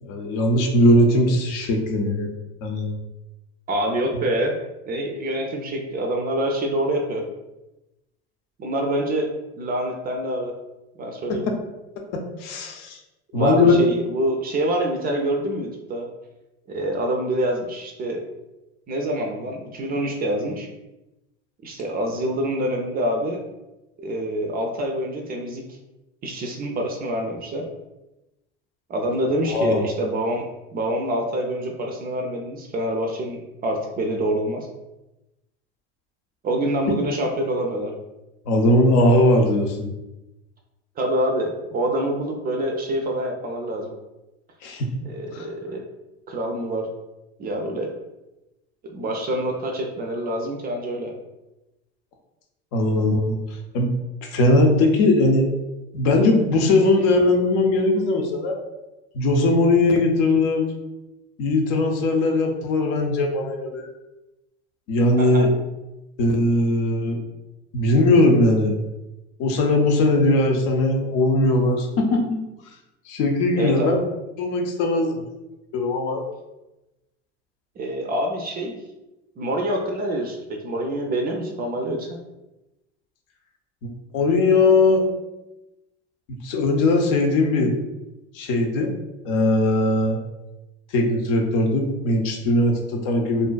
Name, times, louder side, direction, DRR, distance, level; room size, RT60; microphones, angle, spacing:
voice 1, 0.0-2.3 2.6-2.9 11.3-11.4 12.4-13.0 13.3-13.9 29.5-29.8 38.5-39.9 44.6-44.9 45.3-45.5 52.7-53.4 53.7-53.9 54.2-55.5 55.9-58.6 59.1-60.6 61.4-63.9 64.9-65.5 66.2-67.2 67.7-68.7 69.4-72.4 73.1-74.0 74.4-75.2 75.7-76.2 84.1-85.0 86.4-87.7 88.3-88.9 89.2-90.2 90.9-93.5, left 2 dB, 60° left, 2 dB, 0.6 m, -19 dB
voice 2, 3.7-4.5 4.9-7.2 8.6-9.3 9.6-10.5 11.0-11.4 13.3-16.1 16.7-18.2 18.9-20.7 21.6-23.4 24.0-25.6 26.2-27.7 28.9-30.4 30.7-34.7 36.4-37.9 41.0-43.9 45.0-45.8 46.3-46.9 47.4-47.9 48.8-51.1 65.2-65.5 73.6-74.0 77.8-78.8 79.4-82.2, right 1 dB, 30° right, 2 dB, 0.4 m, -26 dB
2.5 x 2.2 x 2.2 m, 0.98 s
hypercardioid pair, 85°, 33 cm